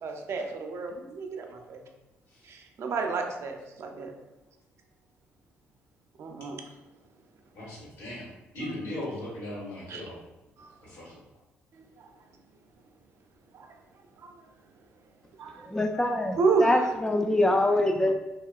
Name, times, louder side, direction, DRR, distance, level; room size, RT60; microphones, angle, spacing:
voice 1, 0.0-1.8 2.4-4.1 6.2-6.6 9.9-10.0 10.6-10.7 11.7-12.1 13.5-13.7 14.2-14.4 15.4-15.7 16.4-16.9, right 4 dB, 60° right, 4 dB, 0.5 m, -31 dB
voice 2, 7.5-8.3 8.5-10.2 10.8-11.2, left 1 dB, 80° left, -7 dB, 1.5 m, -38 dB
voice 3, 15.7-18.1, left 1 dB, 10° left, 4 dB, 0.3 m, -24 dB
2.9 x 2.8 x 2.4 m, 1.0 s
supercardioid pair, 60°, 5 cm